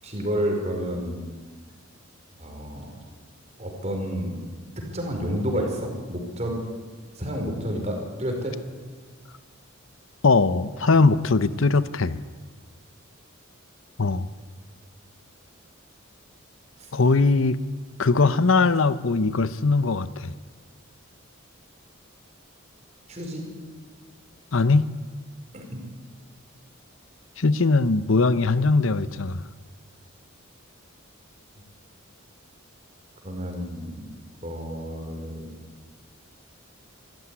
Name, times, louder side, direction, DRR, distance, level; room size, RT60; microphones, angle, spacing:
voice 1, 0.0-1.2 2.4-3.0 3.6-4.4 4.9-6.6 7.1-8.5 23.1-23.4 25.5-25.8 33.2-34.1 34.4-35.5, equal, 30° right, 2 dB, 5.0 m, -30 dB
voice 2, 10.2-12.2 14.0-14.3 16.9-17.6 18.0-20.3 24.5-24.9 27.4-29.4, left 3 dB, 70° left, 14 dB, 0.8 m, -20 dB
25.0 x 14.5 x 9.8 m, 1.4 s
head